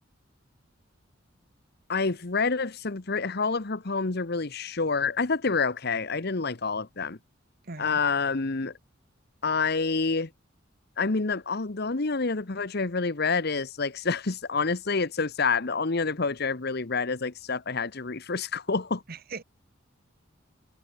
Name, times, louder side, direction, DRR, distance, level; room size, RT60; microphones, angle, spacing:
voice 1, 1.9-7.2 7.8-8.7 9.4-10.3 11.0-19.0, left 4 dB, 55° left, 1.1 m, -28 dB
voice 2, 7.6-8.0 19.1-19.4, right 4 dB, 50° right, 1.3 m, -39 dB
head